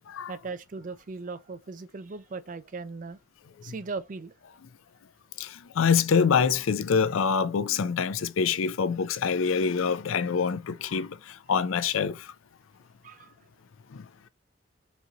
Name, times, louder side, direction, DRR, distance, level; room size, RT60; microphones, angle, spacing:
voice 1, 0.3-3.2 3.6-4.4 13.0-13.3, right 4 dB, 40° right, 0.4 m, -38 dB
voice 2, 5.4-12.3 13.9-14.1, left 6 dB, 85° left, 0.4 m, -25 dB
4.0 x 2.6 x 2.8 m
head